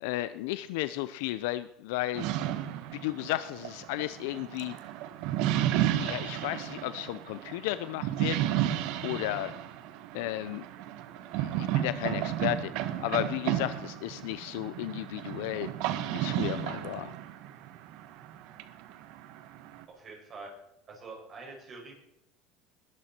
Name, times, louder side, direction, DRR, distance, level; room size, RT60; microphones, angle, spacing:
voice 1, 0.0-2.3 2.9-4.7 6.0-8.7 9.0-9.5 10.1-10.7 11.4-15.7 16.1-17.1, left 16 dB, 80° left, 13 dB, 0.6 m, -34 dB
sound 1, 2.1-19.8, right 12 dB, 65° right, 1.4 m, -33 dB
voice 2, 19.9-20.5 20.9-21.9, right 3 dB, 35° right, 0 dB, 6.2 m, -45 dB
21.0 x 12.5 x 4.5 m, 0.83 s
supercardioid pair, 130°, 0 cm